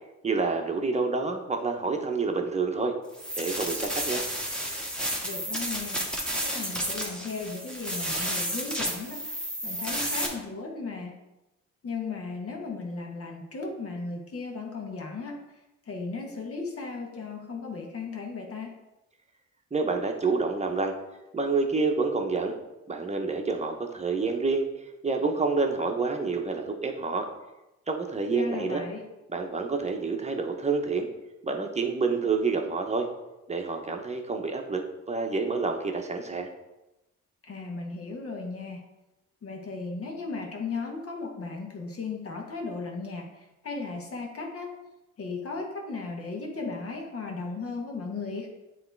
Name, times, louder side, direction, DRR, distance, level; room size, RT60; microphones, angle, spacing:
voice 1, 0.2-2.9 3.4-4.2 19.7-20.9 21.3-22.5 22.9-24.7 25.0-27.3 27.9-28.8 29.3-31.1 31.4-33.1 33.5-36.5, right 4 dB, 20° right, 3 dB, 1.0 m, -28 dB
sound 1, 3.1-10.3, equal, 5° left, 1.5 m, -32 dB
voice 2, 5.2-6.0 6.4-9.3 9.6-11.1 11.8-15.4 15.8-18.7 28.3-29.0 37.4-38.8 39.4-44.7 45.2-48.5, left 4 dB, 50° left, 1 dB, 1.5 m, -36 dB
7.8 x 3.2 x 4.6 m, 0.98 s
cardioid pair, 90°, 30 cm